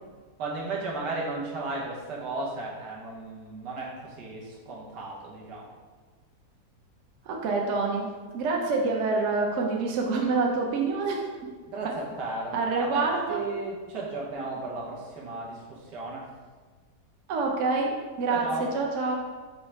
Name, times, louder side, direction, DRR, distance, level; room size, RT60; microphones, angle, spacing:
voice 1, 0.4-5.7 11.7-16.2 18.3-18.7, right 3 dB, 85° right, -4 dB, 1.6 m, -35 dB
voice 2, 7.3-8.1 8.3-11.2 12.5-13.4 17.3-18.4 18.7-19.1, right 3 dB, 60° right, 0 dB, 0.8 m, -26 dB
5.4 x 2.1 x 4.6 m, 1.4 s
omnidirectional pair, 1.8 m